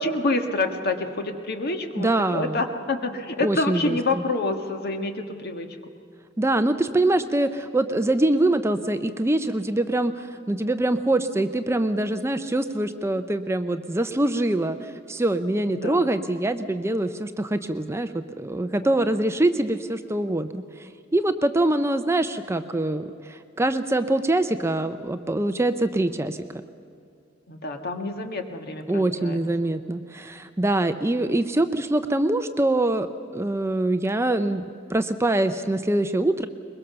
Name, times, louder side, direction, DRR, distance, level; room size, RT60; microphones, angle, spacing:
voice 1, 0.0-5.7 15.7-16.0 27.5-29.4, left 2 dB, 55° left, 6 dB, 1.6 m, -27 dB
voice 2, 2.0-2.6 3.4-4.0 6.4-26.6 28.9-33.1 33.3-34.6 34.9-36.5, right 1 dB, 15° right, 10 dB, 0.6 m, -24 dB
22.0 x 21.5 x 6.9 m, 2.3 s
head